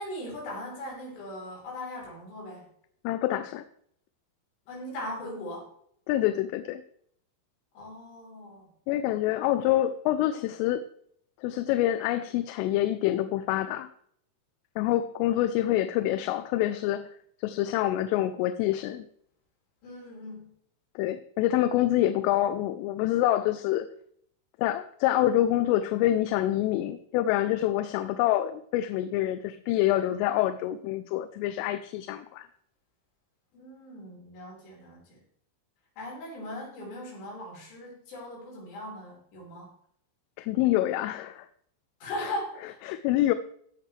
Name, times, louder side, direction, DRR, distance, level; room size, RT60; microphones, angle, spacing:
voice 1, 0.0-2.7 4.7-5.7 7.7-8.7 19.8-20.5 33.5-35.2 36.0-39.7 42.0-42.7, left 1 dB, 60° left, -3 dB, 6.7 m, -39 dB
voice 2, 3.0-3.6 6.1-6.8 8.9-10.8 11.4-13.9 14.8-17.1 17.4-19.1 21.0-23.9 24.6-32.5 40.4-41.5 42.2-42.3 42.9-43.4, left 13 dB, 85° left, 11 dB, 3.1 m, -26 dB
16.0 x 9.6 x 3.2 m, 0.66 s
omnidirectional pair, 5.7 m